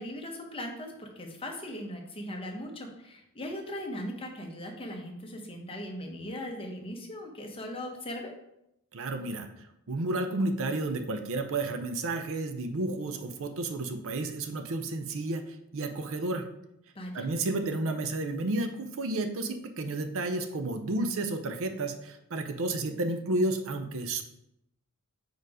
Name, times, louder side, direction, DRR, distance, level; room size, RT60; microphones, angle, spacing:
voice 1, 0.0-8.4 16.9-17.3, left 1 dB, 25° left, 2 dB, 0.9 m, -39 dB
voice 2, 8.9-9.5 9.9-15.4 15.7-16.4 17.1-24.2, right 2 dB, 65° right, 7 dB, 0.6 m, -31 dB
4.7 x 4.6 x 4.8 m, 0.83 s
head